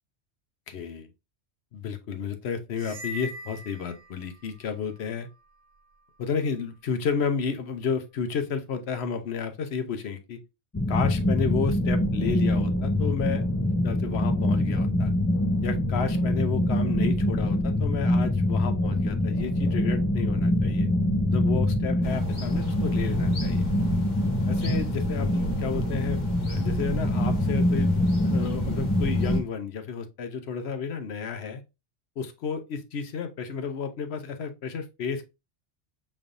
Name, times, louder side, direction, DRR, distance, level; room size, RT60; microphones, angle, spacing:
voice 1, 0.7-1.1 1.7-5.3 6.2-10.4 10.9-15.1 15.6-20.9 21.3-23.7 24.5-26.2 26.5-31.6 32.2-35.2, left 6 dB, 70° left, 1.0 m, -32 dB
sound 1, 2.7-4.6, left 1 dB, 75° right, 1.1 m, -40 dB
sound 2, 10.7-29.4, left 1 dB, 25° left, 0.3 m, -25 dB
sound 3, 22.0-29.4, right 2 dB, 45° left, 1.1 m, -37 dB
5.2 x 3.2 x 2.5 m
omnidirectional pair, 1.1 m